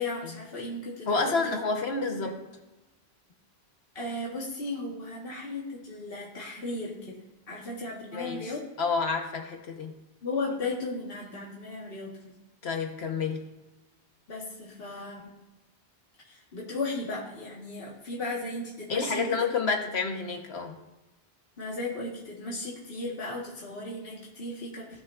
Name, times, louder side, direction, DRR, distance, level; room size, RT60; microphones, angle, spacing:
voice 1, 0.0-1.6 2.2-2.3 4.0-8.7 10.2-12.1 14.3-15.3 16.3-19.4 21.6-25.0, left 2 dB, 65° left, -4 dB, 1.8 m, -36 dB
voice 2, 1.1-2.4 8.1-9.9 12.6-13.4 18.9-20.7, left 4 dB, 85° left, 3 dB, 1.5 m, -29 dB
17.5 x 6.2 x 2.5 m, 1.1 s
omnidirectional pair, 1.1 m